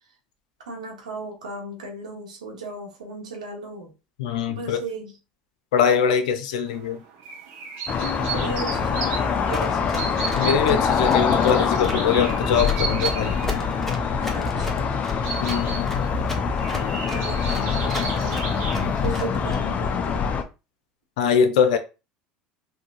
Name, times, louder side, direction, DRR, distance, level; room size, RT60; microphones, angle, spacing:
voice 1, 0.7-3.9 4.5-5.1 7.9-10.4 14.2-15.1 16.6-18.5 18.9-20.3, right 2 dB, 90° right, 1.2 m, -36 dB
voice 2, 4.2-4.8 5.7-7.0 10.3-13.4 15.4-16.0 21.2-21.8, left 7 dB, 75° left, 0.6 m, -22 dB
sound 1, 6.7-19.5, right 5 dB, 65° right, 1.0 m, -35 dB
sound 2, 7.9-20.4, left 6 dB, 40° left, 0.6 m, -24 dB
Run, 9.5-19.6, left 3 dB, 10° left, 1.1 m, -34 dB
3.7 x 2.7 x 2.5 m
hypercardioid pair, 75°, 4 cm